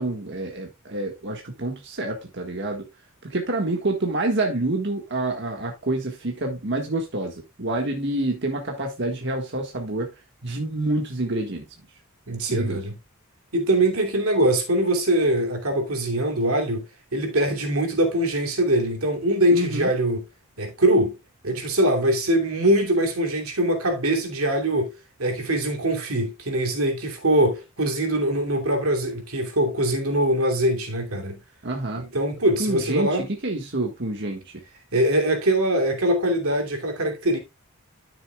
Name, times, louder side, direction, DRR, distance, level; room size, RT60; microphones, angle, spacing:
voice 1, 0.0-2.9 3.2-10.1 10.4-11.7 12.5-12.8 19.5-19.9 31.6-32.0 32.6-34.6, right 2 dB, 55° right, 1.7 m, -27 dB
voice 2, 12.3-13.0 13.5-16.9 17.1-20.2 20.6-21.2 21.4-31.4 32.0-33.3 34.9-37.4, right 1 dB, 85° right, 2.8 m, -22 dB
12.5 x 6.9 x 2.3 m
head